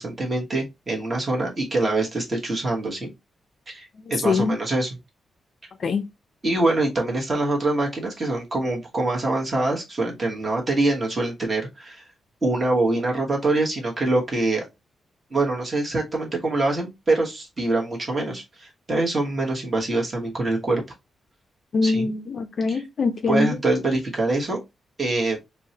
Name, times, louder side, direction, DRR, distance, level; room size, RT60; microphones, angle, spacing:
voice 1, 0.0-3.1 3.7-5.0 6.4-12.0 12.4-14.6 15.3-20.8 21.8-22.1 22.7-22.8 23.3-24.6 25.0-25.4, right 2 dB, 25° right, 1.2 m, -24 dB
voice 2, 4.2-4.6 5.8-6.0 21.7-23.6, left 3 dB, 45° left, 0.4 m, -23 dB
4.4 x 2.1 x 2.8 m
wide cardioid pair, 140°, 0 cm